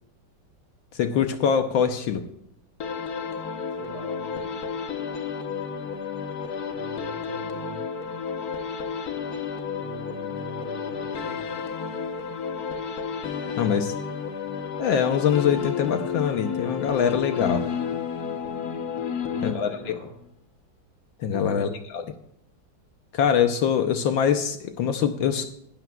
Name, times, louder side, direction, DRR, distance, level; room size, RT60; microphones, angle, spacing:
voice 1, 1.0-2.3 13.6-13.9 14.8-17.6 19.4-20.0 21.2-21.7 21.9-22.0 23.1-25.5, left 8 dB, 75° left, 7 dB, 1.4 m, -23 dB
sound 1, 2.8-20.0, left 6 dB, 55° left, 1.4 m, -31 dB
voice 2, 3.8-4.6 6.7-7.9 9.8-11.4 19.1-20.1 21.3-21.7, right 2 dB, 30° right, 0 dB, 4.3 m, -41 dB
18.5 x 12.0 x 2.3 m, 0.77 s
omnidirectional pair, 2.3 m